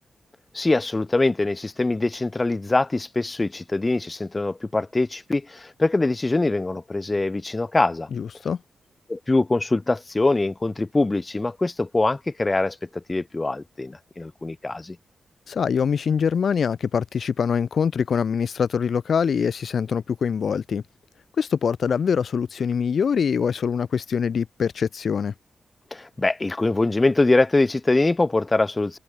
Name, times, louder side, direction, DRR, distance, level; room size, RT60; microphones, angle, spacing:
voice 1, 0.5-8.1 9.1-15.0 25.9-29.0, left 2 dB, 25° left, 0.9 m, -23 dB
voice 2, 8.1-8.6 15.5-20.8 21.4-25.3, left 6 dB, 65° left, 1.1 m, -24 dB
cardioid pair, 85°, 0 cm